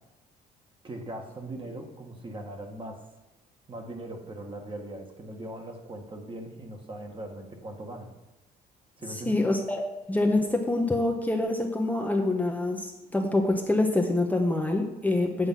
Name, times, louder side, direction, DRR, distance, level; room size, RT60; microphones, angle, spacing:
voice 1, 0.8-3.0 3.7-8.1 9.0-9.4, right 1 dB, 30° right, 3 dB, 1.7 m, -40 dB
voice 2, 9.1-15.5, left 2 dB, 10° left, 1 dB, 1.0 m, -26 dB
8.7 x 8.3 x 5.7 m, 1.0 s
cardioid pair, 110°, 17 cm